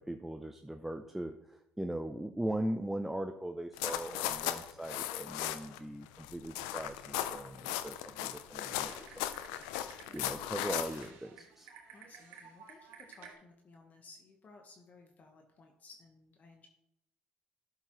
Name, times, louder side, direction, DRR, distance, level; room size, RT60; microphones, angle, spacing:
voice 1, 0.0-11.7, right 1 dB, 5° right, 6 dB, 0.6 m, -40 dB
sound 1, 3.8-5.8 6.1-11.1, left 12 dB, 85° left, 0.5 m, -37 dB
voice 2, 3.9-4.2 5.7-5.8 9.5-9.7 10.0-10.2 11.9-16.7, left 3 dB, 45° left, 3 dB, 1.2 m, -58 dB
Typing, 8.6-13.3, right 6 dB, 75° right, 2.2 m, -54 dB
11.0 x 7.1 x 3.0 m, 0.82 s
supercardioid pair, 70°, 4 cm